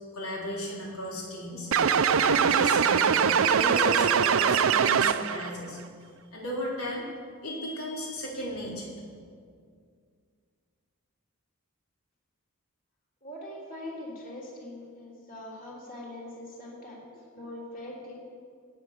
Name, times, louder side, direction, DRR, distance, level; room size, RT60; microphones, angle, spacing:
voice 1, 0.1-1.7 2.2-5.8 6.3-7.1 7.4-9.0, left 1 dB, 80° left, -3 dB, 3.9 m, -35 dB
sound 1, 1.7-5.5, right 7 dB, 65° right, 0.5 m, -22 dB
voice 2, 13.2-18.3, left 1 dB, 35° left, -3 dB, 3.3 m, -42 dB
18.0 x 8.6 x 6.6 m, 2.1 s
head